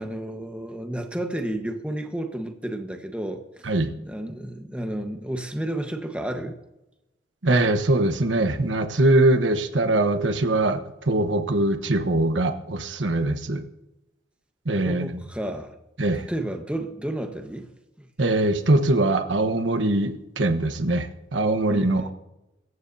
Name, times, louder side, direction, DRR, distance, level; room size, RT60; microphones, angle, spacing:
voice 1, 0.0-3.6 4.0-6.6 14.8-15.7 16.3-17.7 18.0-18.1 21.7-22.1, right 1 dB, 5° right, 4 dB, 1.3 m, -31 dB
voice 2, 7.4-13.6 14.6-15.2 16.0-16.3 18.2-22.1, right 2 dB, 90° right, 7 dB, 1.2 m, -22 dB
24.5 x 14.5 x 2.8 m, 0.94 s
head